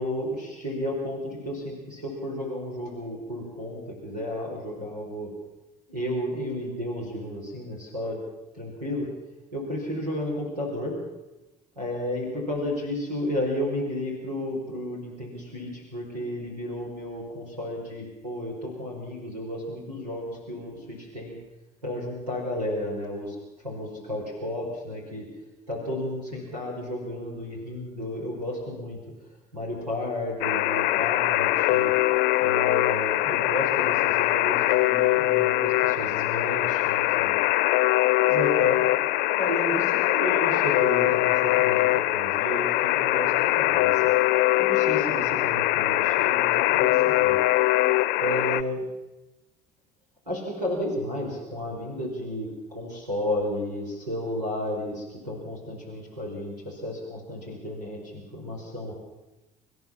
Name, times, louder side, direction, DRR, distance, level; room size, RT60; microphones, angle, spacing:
voice 1, 0.0-5.3 5.9-8.2 8.5-9.1 9.5-10.9 11.7-21.4 21.8-23.4 23.6-25.3 25.7-29.0 29.5-31.9 32.4-37.4 38.2-39.0 39.2-44.1 44.6-47.4 48.2-48.9 50.3-58.9, left 1 dB, 85° right, -2 dB, 4.8 m, -32 dB
Alarm, 30.4-48.6, left 17 dB, 50° left, 0.7 m, -22 dB
25.5 x 14.5 x 7.2 m, 1.0 s
figure-of-eight pair, 60°, 20 cm